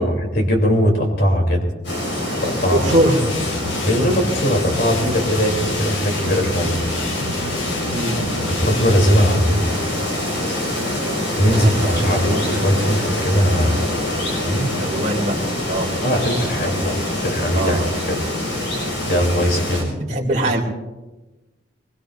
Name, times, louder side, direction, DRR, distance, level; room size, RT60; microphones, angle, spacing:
voice 1, 0.0-1.6 2.4-2.8 3.8-6.8 8.5-9.8 11.3-13.9 14.4-14.7 16.0-17.8 18.1-18.2 18.9-19.8, equal, 50° left, 1 dB, 3.2 m, -20 dB
sound 1, 1.8-19.8, left 1 dB, 70° left, 5.6 m, -25 dB
voice 2, 2.7-3.2 7.9-8.2 11.4-12.1 14.8-15.3 15.7-15.9 17.5-17.9 19.8-20.6, right 1 dB, 40° right, -3 dB, 2.5 m, -21 dB
sound 2, 2.9-9.5, left 3 dB, 85° left, 1.3 m, -31 dB
22.5 x 21.0 x 2.6 m, 1.1 s
head